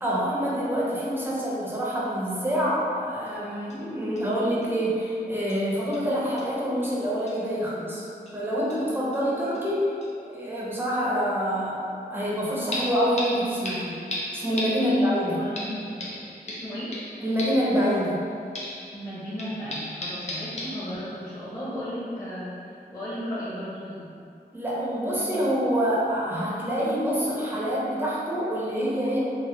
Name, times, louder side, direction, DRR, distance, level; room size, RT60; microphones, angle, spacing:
voice 1, 0.0-8.0 8.3-9.9 10.3-14.0 14.3-15.4 17.2-18.2 24.5-29.2, equal, 10° right, -7 dB, 0.8 m, -26 dB
sound 1, 3.3-3.4 3.7-3.8 4.2-4.3 4.6-4.7 5.5-5.6 5.9-6.1 6.4-6.5 6.8-6.9 7.3-7.4 8.3-8.4 8.7-9.2 9.5-9.6 10.0-10.1 12.7-18.3 18.5-21.3 21.8-21.9, left 1 dB, 45° left, 0.6 m, -36 dB
voice 2, 14.7-16.2 16.4-16.9 18.9-24.1, equal, 25° left, -12 dB, 1.1 m, -35 dB
3.7 x 2.1 x 3.3 m, 2.5 s
wide cardioid pair, 85°, 17 cm